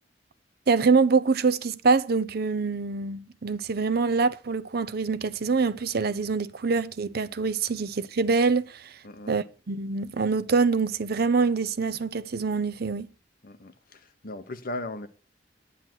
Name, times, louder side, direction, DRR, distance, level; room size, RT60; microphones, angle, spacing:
voice 1, 0.7-9.0 9.3-13.1, right 4 dB, 60° right, 0.6 m, -25 dB
voice 2, 13.4-15.1, left 2 dB, 55° left, 1.0 m, -37 dB
9.9 x 9.4 x 4.5 m
head